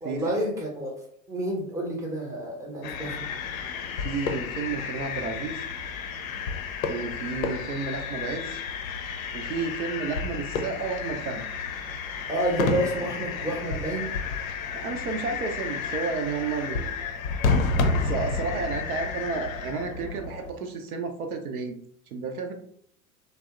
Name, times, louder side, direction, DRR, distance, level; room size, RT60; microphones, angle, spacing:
voice 1, 0.0-0.9 1.3-3.4 12.3-14.1, right 1 dB, 10° right, -1 dB, 0.6 m, -29 dB
sound 1, 2.8-20.5, left 4 dB, 70° left, 0.5 m, -31 dB
voice 2, 3.9-5.6 6.9-8.6 9.3-11.4 14.7-16.9 18.0-21.8 22.1-22.5, right 4 dB, 80° right, 5 dB, 0.5 m, -32 dB
2.7 x 2.0 x 2.3 m, 0.66 s
figure-of-eight pair, 85°, 44 cm